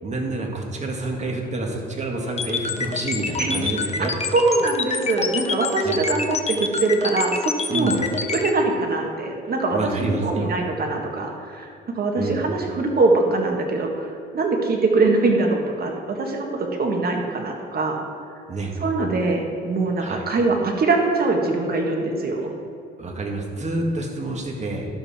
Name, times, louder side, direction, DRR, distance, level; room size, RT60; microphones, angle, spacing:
voice 1, 0.0-4.1 5.8-6.0 7.7-8.0 9.7-10.5 12.2-12.4 18.5-18.7 20.0-20.2 23.0-24.9, right 2 dB, 35° right, 1 dB, 1.9 m, -28 dB
sound 1, 2.4-8.5, left 5 dB, 35° left, 0.8 m, -26 dB
voice 2, 4.3-7.9 8.3-11.7 12.0-18.0 18.8-22.5, right 3 dB, 50° right, 2 dB, 1.7 m, -22 dB
12.0 x 7.6 x 4.4 m, 2.6 s
cardioid pair, 90°, 20 cm